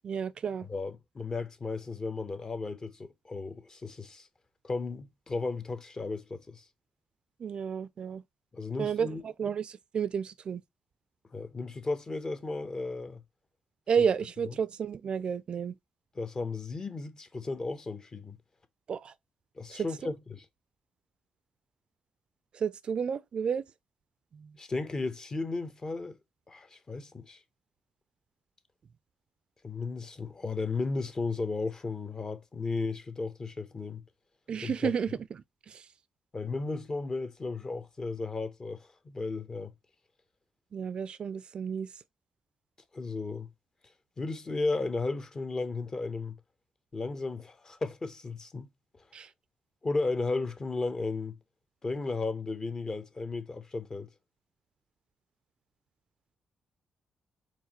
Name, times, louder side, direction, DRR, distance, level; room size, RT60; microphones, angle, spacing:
voice 1, 0.0-0.7 7.4-8.2 8.8-10.6 13.9-15.7 18.9-19.1 19.7-20.1 22.5-23.6 24.3-24.5 34.5-35.1 35.7-35.8 40.7-41.9 49.1-49.3, right 7 dB, 50° right, 0.4 m, -31 dB
voice 2, 0.6-4.3 4.6-6.6 8.5-9.2 11.3-13.2 14.5-14.6 16.1-18.4 19.6-20.5 24.6-26.2 26.5-27.4 29.6-34.0 34.6-34.9 36.3-39.7 42.9-43.5 44.2-46.4 46.9-48.7 49.8-51.4 51.8-54.1, left 3 dB, 30° left, 1.0 m, -34 dB
4.7 x 3.9 x 2.9 m
cardioid pair, 95°, 2 cm